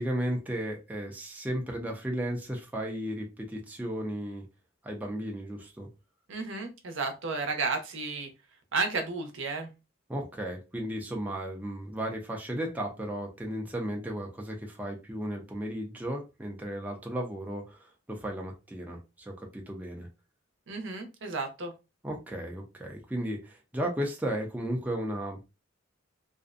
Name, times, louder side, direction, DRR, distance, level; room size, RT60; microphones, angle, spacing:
voice 1, 0.0-4.4 4.8-5.9 10.1-20.1 22.0-25.4, right 1 dB, 10° right, 0 dB, 0.4 m, -34 dB
voice 2, 6.3-8.3 8.7-9.7 20.7-21.7, right 4 dB, 70° right, 5 dB, 0.6 m, -32 dB
2.5 x 2.1 x 2.4 m, 0.27 s
head